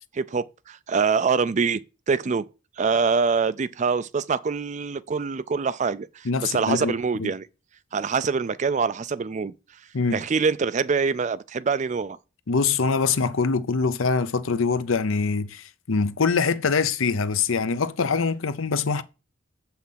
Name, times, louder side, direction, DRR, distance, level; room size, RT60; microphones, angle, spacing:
voice 1, 0.1-2.5 2.8-7.5 7.9-9.5 10.1-12.2, right 5 dB, 35° right, 0.4 m, -25 dB
voice 2, 6.2-6.9 7.2-7.3 9.9-10.1 12.5-19.0, left 4 dB, 80° left, 0.7 m, -24 dB
7.5 x 5.8 x 5.7 m
head